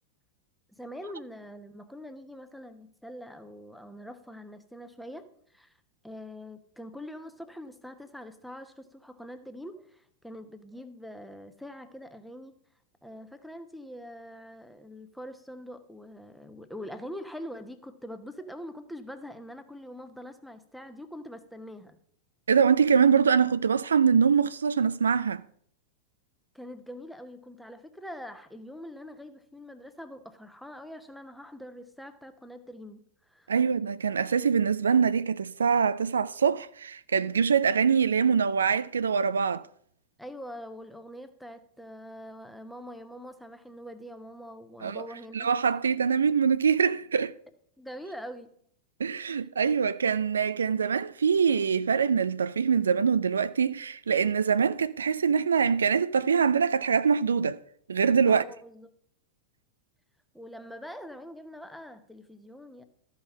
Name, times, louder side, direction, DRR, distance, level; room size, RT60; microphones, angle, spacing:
voice 1, 0.8-5.3 5.5-5.7 6.0-12.6 13.0-22.0 26.5-33.5 40.2-45.5 47.8-48.5 58.3-58.9 60.3-62.8, equal, ahead, 1.0 m, -44 dB
voice 2, 22.5-25.4 33.5-39.7 44.8-45.0 45.3-47.3 49.0-57.6 57.9-58.4, right 6 dB, 70° right, 0.3 m, -24 dB
13.0 x 5.6 x 5.9 m
figure-of-eight pair, 90°, 0 cm